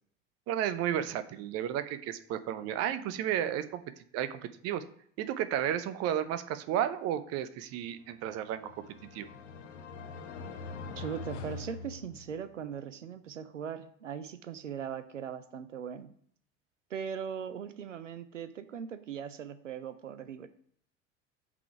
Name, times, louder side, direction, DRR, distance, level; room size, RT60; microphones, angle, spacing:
voice 1, 0.5-3.8 4.1-4.8 5.2-8.8 9.1-9.3, right 10 dB, 45° right, 12 dB, 0.7 m, -33 dB
sound 1, 8.2-12.6, left 4 dB, 65° left, 0.8 m, -44 dB
voice 2, 11.0-16.1 16.9-20.5, right 8 dB, 85° right, 11 dB, 0.5 m, -39 dB
5.9 x 3.9 x 5.9 m, 0.62 s
figure-of-eight pair, 65°, 36 cm